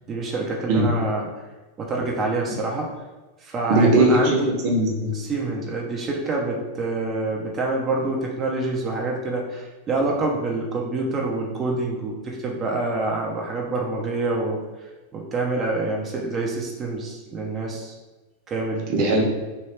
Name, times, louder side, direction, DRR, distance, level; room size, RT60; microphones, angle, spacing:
voice 1, 0.1-1.3 1.8-2.9 3.4-4.5 5.1-17.9 18.5-18.9, right 2 dB, 25° right, -1 dB, 0.5 m, -26 dB
voice 2, 3.7-4.4 4.6-5.1 18.9-19.2, right 2 dB, 45° right, 0 dB, 1.0 m, -18 dB
3.2 x 2.3 x 4.3 m, 1.2 s
supercardioid pair, 145°, 0 cm